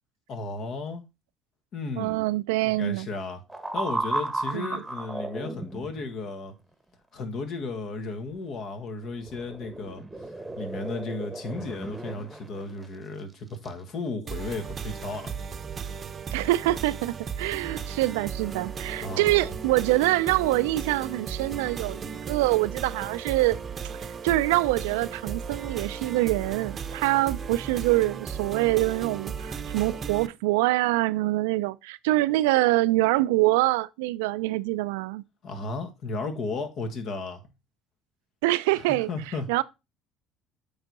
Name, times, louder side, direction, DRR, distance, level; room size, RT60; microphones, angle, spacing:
voice 1, 0.3-1.0 1.7-2.2 2.7-3.4 3.7-6.5 7.1-10.0 10.6-15.3 19.0-19.5 35.4-37.4 38.7-39.5, left 3 dB, 55° left, 1.5 m, -34 dB
voice 2, 2.0-3.1 4.5-4.8 16.3-23.6 24.2-35.2 38.4-39.1 39.5-39.6, right 18 dB, 80° right, 0.3 m, -25 dB
sound 1, 3.5-6.2 9.0-13.0 13.5-13.7, right 2 dB, 10° right, 1.0 m, -34 dB
sound 2, 14.3-30.3, right 6 dB, 40° right, 0.7 m, -36 dB
8.6 x 3.6 x 4.0 m
hypercardioid pair, 65°, 0 cm